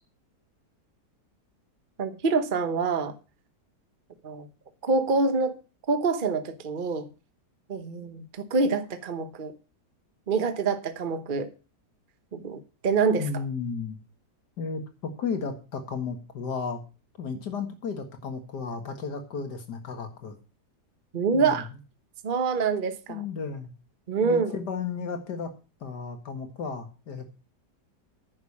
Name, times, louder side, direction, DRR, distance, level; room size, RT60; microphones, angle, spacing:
voice 1, 2.0-3.1 4.2-4.5 4.8-5.6 5.9-7.1 7.7-9.6 10.3-11.5 12.3-13.3 21.1-21.7 22.2-23.2 24.1-24.6, right 4 dB, 35° right, 1.0 m, -26 dB
voice 2, 13.2-14.0 14.6-16.8 17.2-20.4 21.3-21.6 23.1-23.7 24.2-25.5 25.8-27.3, left 5 dB, 75° left, 2.3 m, -34 dB
10.0 x 6.6 x 7.2 m
omnidirectional pair, 1.8 m